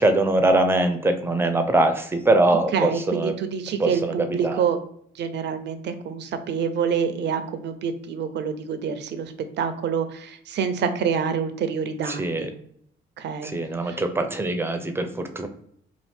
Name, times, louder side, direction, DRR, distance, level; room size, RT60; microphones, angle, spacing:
voice 1, 0.0-3.3 3.8-4.6 12.0-12.5 13.4-15.5, right 2 dB, 10° right, 7 dB, 0.5 m, -22 dB
voice 2, 2.7-4.8 5.2-12.5 13.2-13.5 13.9-14.0, right 7 dB, 60° right, 9 dB, 0.5 m, -27 dB
2.7 x 2.5 x 3.4 m, 0.66 s
cardioid pair, 90°, 20 cm